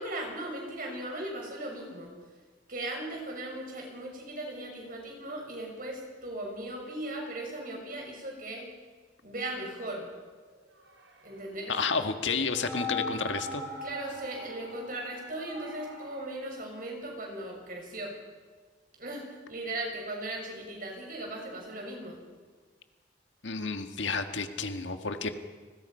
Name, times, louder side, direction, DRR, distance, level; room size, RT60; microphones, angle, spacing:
voice 1, 0.0-2.1 2.7-8.7 9.2-10.1 11.2-11.7 13.8-18.1 19.0-22.2, right 1 dB, 50° right, 1 dB, 6.3 m, -38 dB
sound 1, 11.5-16.3, left 2 dB, 85° right, 3.8 m, -40 dB
voice 2, 11.7-13.6 23.4-25.3, left 4 dB, 80° left, 7 dB, 1.7 m, -31 dB
30.0 x 21.0 x 5.7 m, 1.4 s
head